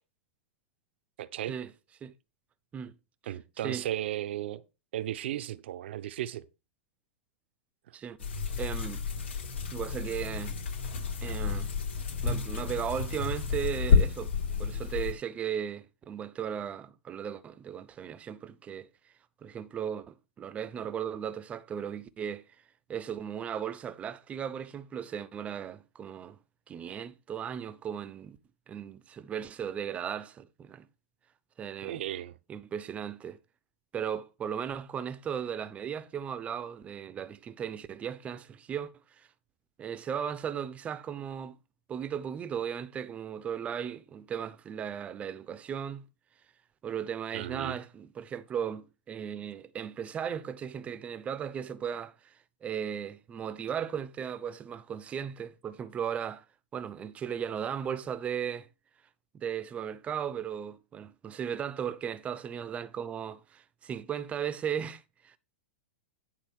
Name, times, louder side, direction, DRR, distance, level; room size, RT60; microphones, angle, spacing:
voice 1, 1.2-1.5 3.3-4.6 4.9-6.5 7.9-8.0 31.8-32.4 47.3-47.8, right 12 dB, 70° right, 0.8 m, -35 dB
sound 1, 8.2-15.1, left 5 dB, 85° left, 3.7 m, -30 dB
voice 2, 8.6-9.0 9.7-10.6 11.2-11.7 12.2-14.3 14.6-18.9 19.4-22.4 22.9-26.4 26.7-28.4 28.7-30.9 31.6-32.0 32.5-33.4 33.9-38.9 39.2-39.3 39.8-41.6 41.9-46.0 46.8-52.3 52.6-56.4 56.7-58.7 59.3-65.4, right 8 dB, 20° right, 0.7 m, -36 dB
10.5 x 4.1 x 6.2 m
hypercardioid pair, 135°, 6 cm